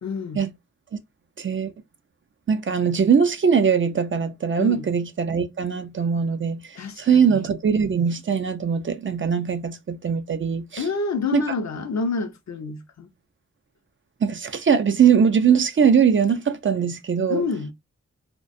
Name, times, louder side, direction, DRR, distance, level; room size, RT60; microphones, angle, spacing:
voice 1, 0.0-0.4 4.6-4.9 6.8-7.4 10.8-13.1 17.3-17.7, left 4 dB, 60° left, 0.6 m, -28 dB
voice 2, 1.4-1.7 2.5-10.8 11.3-11.4 14.2-17.4, right 7 dB, 40° right, 0.4 m, -21 dB
2.3 x 2.1 x 2.5 m
cardioid pair, 45°, 31 cm